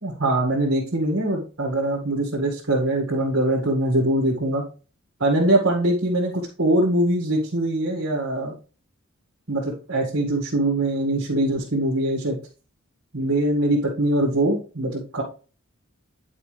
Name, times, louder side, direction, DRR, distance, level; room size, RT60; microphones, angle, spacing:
voice 1, 0.0-4.6 5.2-8.5 9.5-12.4 13.1-15.2, right 1 dB, 65° right, -3 dB, 2.0 m, -22 dB
9.8 x 4.8 x 3.3 m, 0.36 s
head